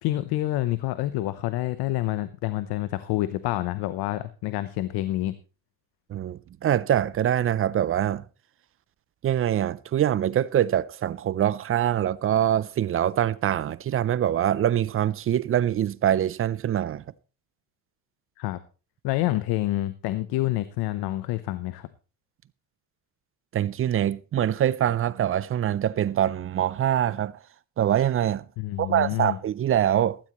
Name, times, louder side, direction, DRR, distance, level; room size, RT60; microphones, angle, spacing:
voice 1, 0.0-5.4 18.4-18.6 19.0-21.9 28.6-29.4, left 16 dB, 90° left, 0.9 m, -28 dB
voice 2, 6.1-8.2 9.2-17.0 23.5-27.4 27.8-28.5 28.8-30.2, right 10 dB, 35° right, 0.5 m, -24 dB
15.5 x 13.0 x 3.1 m
cardioid pair, 135°, 37 cm